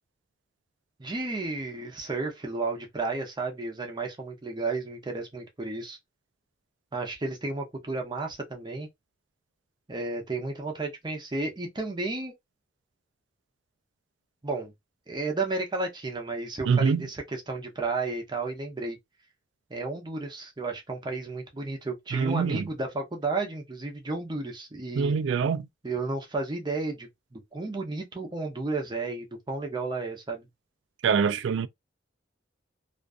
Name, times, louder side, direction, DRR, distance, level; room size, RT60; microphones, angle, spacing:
voice 1, 1.0-6.0 6.9-8.9 9.9-12.3 14.4-14.7 15.1-19.0 19.7-25.1 25.8-30.5, right 3 dB, 25° right, 0.6 m, -32 dB
voice 2, 16.7-17.1 22.1-22.7 24.9-25.7 31.0-31.7, right 6 dB, 70° right, 0.3 m, -24 dB
2.5 x 2.3 x 2.4 m
head